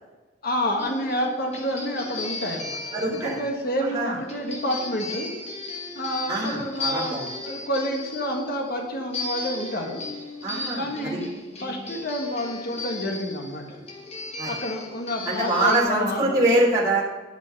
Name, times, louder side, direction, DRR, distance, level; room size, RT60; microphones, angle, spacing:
voice 1, 0.4-5.3 5.9-10.0 10.8-11.3 11.6-13.8 14.4-16.4, equal, 50° left, 1 dB, 1.5 m, -29 dB
sound 1, 0.8-15.8, left 3 dB, 35° left, 1.5 m, -36 dB
voice 2, 2.9-3.4 3.9-4.2 6.3-7.3 10.4-11.2 14.4-14.5 15.2-17.0, right 1 dB, 20° right, -8 dB, 2.4 m, -24 dB
11.0 x 5.3 x 6.4 m, 1.3 s
head